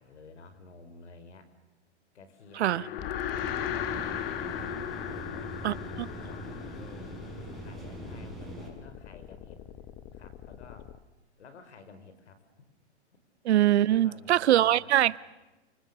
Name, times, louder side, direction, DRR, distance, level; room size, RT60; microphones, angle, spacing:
voice 1, 0.0-1.5 2.1-4.3 5.0-9.6 10.1-10.9 11.4-12.5 13.9-15.1, left 4 dB, 80° left, 5.0 m, -52 dB
sound 1, 2.6-8.0, left 10 dB, 55° left, 2.3 m, -36 dB
sound 2, 3.0-11.0, left 10 dB, 30° left, 1.1 m, -46 dB
sound 3, 3.3-8.7, right 2 dB, ahead, 7.9 m, -43 dB
voice 2, 5.6-6.1 13.4-15.2, right 13 dB, 70° right, 0.9 m, -23 dB
29.5 x 25.5 x 6.8 m
hypercardioid pair, 135°, 34 cm